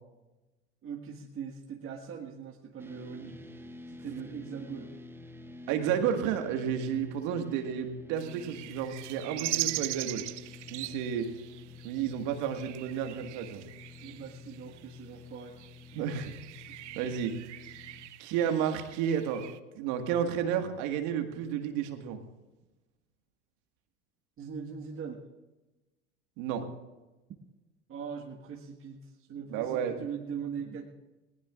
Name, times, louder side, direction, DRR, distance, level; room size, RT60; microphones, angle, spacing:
voice 1, 0.8-3.5 3.9-4.9 14.0-15.5 16.7-16.8 24.4-25.2 27.9-30.9, right 6 dB, 35° right, 0 dB, 1.7 m, -41 dB
sound 1, 2.8-18.1, left 3 dB, 5° right, 1.0 m, -49 dB
voice 2, 5.7-10.2 10.7-11.3 11.8-13.6 16.0-16.4 17.0-17.4 18.2-19.4 19.8-22.2 26.4-26.6 29.5-29.9, right 8 dB, 60° right, 5 dB, 1.8 m, -31 dB
sound 2, 8.2-19.6, right 16 dB, 80° right, 0.7 m, -41 dB
19.5 x 19.0 x 2.5 m, 1.1 s
hypercardioid pair, 80°, 35 cm